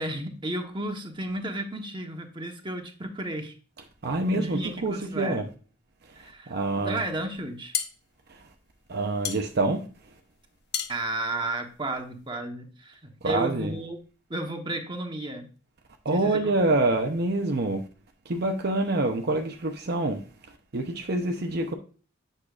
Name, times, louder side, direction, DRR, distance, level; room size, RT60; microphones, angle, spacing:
voice 1, 0.0-3.5 4.3-5.4 6.1-7.7 10.9-14.0 14.3-15.5 16.1-16.4, right 1 dB, 25° right, 1.1 m, -33 dB
voice 2, 4.0-5.5 6.0-7.0 8.3-8.5 8.9-10.2 13.2-13.7 16.0-17.9 18.2-21.7, right 2 dB, 55° right, 0.7 m, -27 dB
sound 1, 7.4-12.3, left 9 dB, 60° left, 0.9 m, -36 dB
8.5 x 6.4 x 2.4 m
head